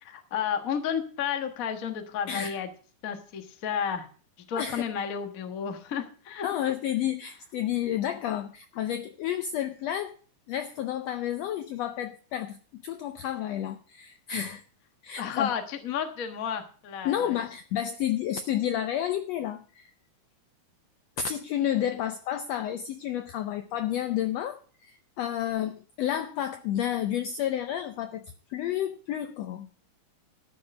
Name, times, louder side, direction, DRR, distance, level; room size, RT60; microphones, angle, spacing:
voice 1, 0.0-2.7 3.0-4.1 4.5-6.7 15.2-17.4, left 7 dB, 65° left, 6 dB, 0.8 m, -32 dB
voice 2, 4.6-5.0 6.4-10.2 10.5-14.6 15.0-15.5 17.0-19.9 21.2-28.2 28.5-29.7, left 10 dB, 90° left, 9 dB, 1.4 m, -31 dB
12.5 x 6.6 x 6.4 m, 0.41 s
omnidirectional pair, 3.8 m